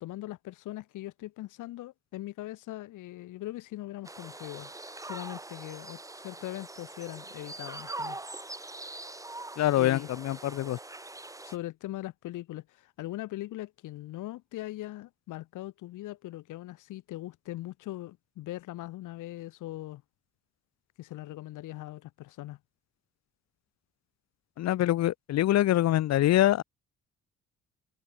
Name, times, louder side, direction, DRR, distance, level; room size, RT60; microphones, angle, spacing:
voice 1, 0.0-4.7 5.0-8.2 9.8-10.1 11.2-20.0 21.0-22.6, left 16 dB, 85° left, 1.5 m, -40 dB
sound 1, 4.0-11.6, right 2 dB, 10° right, 1.4 m, -43 dB
voice 2, 9.6-10.8 24.6-26.6, left 14 dB, 60° left, 0.6 m, -24 dB
cardioid pair, 90°, 30 cm